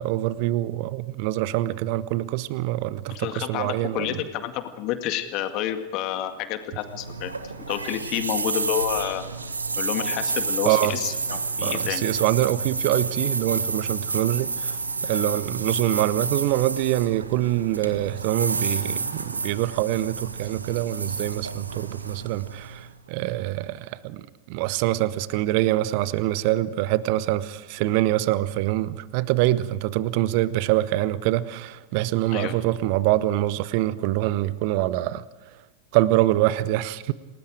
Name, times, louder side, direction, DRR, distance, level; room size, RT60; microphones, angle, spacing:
voice 1, 0.0-4.1 10.6-11.0 11.6-14.7 15.0-35.2 35.9-37.1, right 15 dB, 45° right, 0.9 m, -25 dB
voice 2, 3.1-7.3 7.7-9.2 9.8-12.1 32.3-32.5, left 11 dB, 40° left, 2.0 m, -29 dB
sound 1, 6.8-23.0, right 4 dB, 75° right, 1.5 m, -30 dB
28.5 x 19.0 x 5.0 m
figure-of-eight pair, 90°, 0 cm